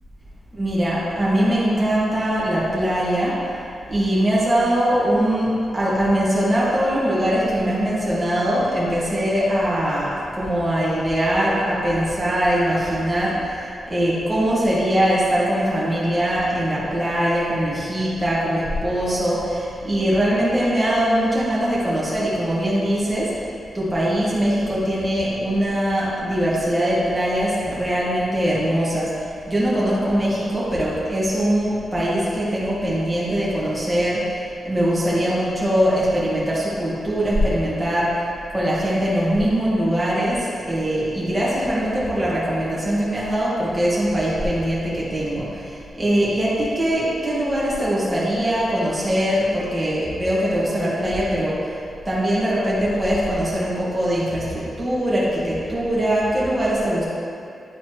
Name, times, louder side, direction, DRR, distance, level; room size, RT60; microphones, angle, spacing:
voice 1, 0.5-3.4 3.9-10.1 10.4-23.3 23.7-29.1 29.5-34.4 34.6-38.1 38.5-51.6 52.0-57.0, equal, 10° right, -8 dB, 1.6 m, -21 dB
11.0 x 4.1 x 3.1 m, 2.4 s
wide cardioid pair, 180°, 0 cm